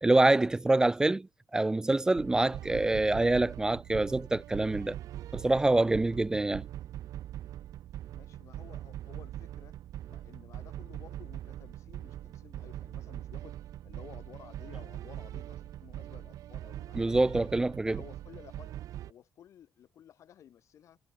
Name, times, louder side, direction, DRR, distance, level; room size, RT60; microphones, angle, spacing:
voice 1, 0.0-1.3 1.5-5.0 5.3-6.7 16.9-18.0, right 2 dB, 10° right, 0.3 m, -26 dB
sound 1, 2.2-19.1, right 12 dB, 70° right, 1.7 m, -42 dB
voice 2, 8.1-9.7 10.1-17.5 17.8-18.7 19.1-21.0, left 10 dB, 55° left, 4.1 m, -54 dB
cardioid pair, 150°, 6 cm